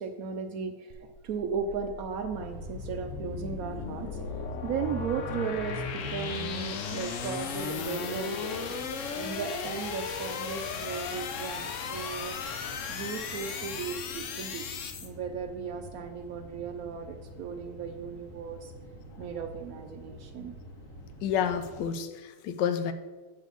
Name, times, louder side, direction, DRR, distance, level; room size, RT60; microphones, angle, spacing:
voice 1, 0.0-8.7 9.1-12.4 12.9-14.7 15.0-18.7 19.2-20.5, right 6 dB, 80° right, 6 dB, 0.7 m, -36 dB
sound 1, 0.9-15.1, left 5 dB, 90° left, 0.6 m, -36 dB
sound 2, 2.3-21.8, equal, 45° left, 2.1 m, -48 dB
voice 2, 21.2-22.9, left 8 dB, 75° left, 9 dB, 1.2 m, -29 dB
8.0 x 4.1 x 6.8 m, 1.3 s
omnidirectional pair, 2.1 m